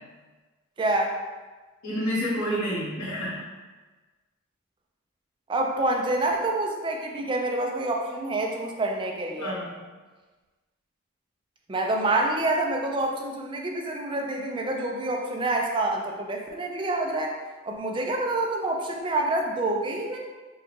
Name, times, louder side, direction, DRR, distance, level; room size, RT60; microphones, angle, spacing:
voice 1, 0.8-1.1 5.5-9.5 11.7-17.3 17.7-20.2, right 2 dB, 25° right, 1 dB, 0.4 m, -27 dB
voice 2, 1.8-3.4 9.4-9.8, equal, 85° left, -12 dB, 1.2 m, -29 dB
4.5 x 2.3 x 3.1 m, 1.3 s
head